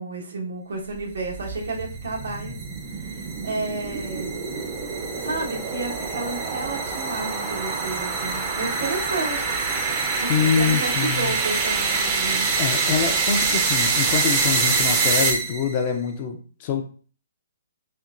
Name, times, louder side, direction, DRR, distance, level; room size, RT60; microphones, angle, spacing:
voice 1, 0.0-2.6 2.8-4.3 5.1-9.5 10.2-12.6, right 3 dB, 85° right, -1 dB, 1.3 m, -31 dB
sound 1, 1.0-15.8, right 4 dB, 25° right, 0.7 m, -25 dB
voice 2, 10.3-11.4 12.6-16.8, left 7 dB, 35° left, 5 dB, 0.6 m, -25 dB
4.3 x 2.8 x 2.5 m, 0.40 s
hypercardioid pair, 155°, 0 cm